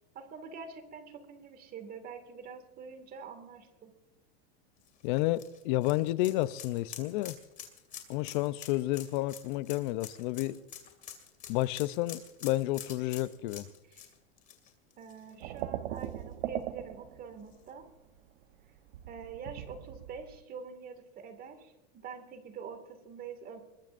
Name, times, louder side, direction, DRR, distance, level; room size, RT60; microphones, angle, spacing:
voice 1, 0.1-3.9 13.9-14.0 15.0-17.8 19.1-23.6, right 5 dB, 30° right, 2.2 m, -45 dB
sound 1, 4.8-15.6 16.0-16.1 17.5-17.6, left 9 dB, 25° left, 2.4 m, -47 dB
voice 2, 5.0-7.4 8.1-10.6 11.5-13.7, left 17 dB, 50° left, 0.7 m, -30 dB
sound 2, 15.4-17.9 18.2-20.4, right 12 dB, 70° right, 1.1 m, -39 dB
23.0 x 21.5 x 2.6 m
supercardioid pair, 155°, 31 cm